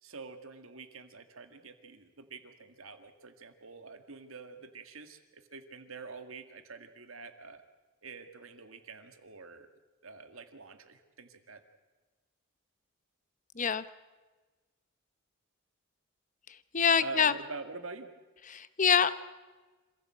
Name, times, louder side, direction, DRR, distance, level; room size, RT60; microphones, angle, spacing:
voice 1, 0.0-7.6 8.0-9.7 10.0-11.6 17.0-18.1, right 4 dB, 75° right, 8 dB, 2.0 m, -46 dB
voice 2, 16.7-17.3 18.5-19.1, left 6 dB, 35° left, 15 dB, 0.8 m, -25 dB
26.5 x 15.5 x 7.8 m, 1.3 s
head